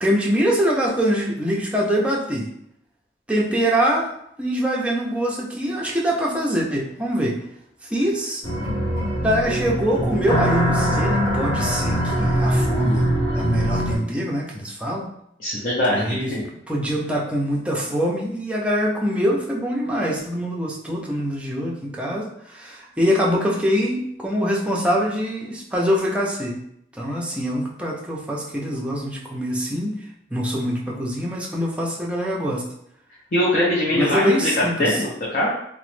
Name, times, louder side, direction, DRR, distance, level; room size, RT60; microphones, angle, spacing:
voice 1, 0.0-2.5 3.3-4.1 4.4-7.4 7.8-8.4 9.2-13.1 13.3-15.1 15.9-16.3 16.7-26.6 26.9-30.0 30.3-32.6 33.9-35.0, equal, 5° right, -3 dB, 0.5 m, -24 dB
sound 1, 8.4-14.0, equal, 25° left, 1.0 m, -22 dB
voice 2, 15.4-16.4 33.3-35.5, left 1 dB, 50° left, -5 dB, 0.6 m, -22 dB
2.9 x 2.0 x 3.2 m, 0.74 s
head